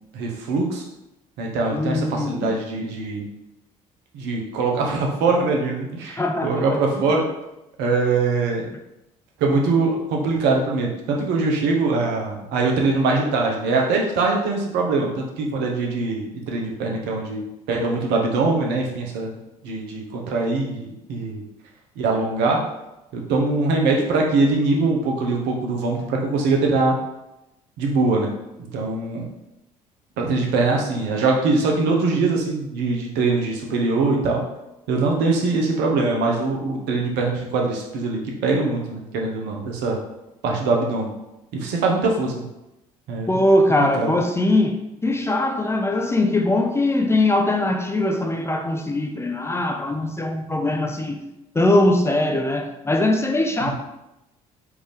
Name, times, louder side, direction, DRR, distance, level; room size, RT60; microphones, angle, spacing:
voice 1, 0.1-0.8 1.4-3.3 4.1-7.2 7.8-8.7 9.4-17.4 17.7-19.3 19.6-21.4 22.0-22.6 23.1-27.0 27.8-28.3 28.7-29.3 30.2-34.4 34.9-40.0 40.4-41.1 41.5-42.4 43.1-43.4 43.8-44.1 53.7-53.8, right 3 dB, 65° right, 0.8 m, -22 dB
voice 2, 1.7-2.5 6.2-6.8 43.3-51.2 51.5-53.7, left 1 dB, 15° left, 0.4 m, -21 dB
3.5 x 2.6 x 3.3 m
hypercardioid pair, 55°, 18 cm